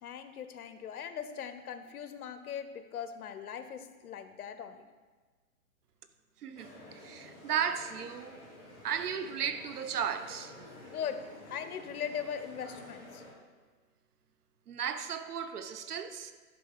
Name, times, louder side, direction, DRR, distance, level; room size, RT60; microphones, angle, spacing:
voice 1, 0.0-4.9 10.8-13.2, left 8 dB, 70° left, 0.8 m, -40 dB
voice 2, 6.4-8.4 8.8-10.5 14.7-16.3, right 8 dB, 85° right, 0.9 m, -35 dB
sound 1, 6.5-13.3, left 1 dB, 15° right, 2.7 m, -51 dB
11.0 x 3.8 x 4.9 m
hypercardioid pair, 170°, 45 cm